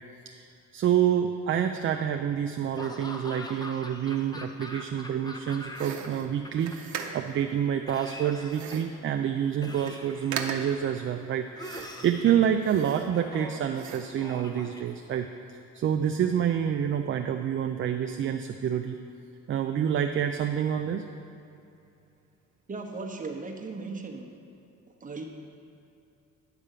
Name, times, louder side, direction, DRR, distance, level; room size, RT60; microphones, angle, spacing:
voice 1, 0.7-6.7 7.1-15.3 15.7-19.0 19.5-21.1, right 9 dB, 40° right, 6 dB, 0.4 m, -27 dB
Laughter / Cough, 2.7-6.1 6.3-7.2 7.9-9.0 9.6-10.8 11.6-12.5 13.1-13.7 14.2-15.4, left 1 dB, 15° left, 0.7 m, -43 dB
sound 1, 5.7-7.4 8.5-9.0 9.4-9.5 9.7-10.0 10.3-10.8 11.6-12.1 12.6-13.4 13.7-14.2, right 7 dB, 70° right, 0.7 m, -38 dB
voice 2, 22.7-24.3 25.0-25.3, right 3 dB, 25° right, 1 dB, 1.0 m, -37 dB
10.0 x 3.6 x 6.6 m, 2.8 s
cardioid pair, 90°, 30 cm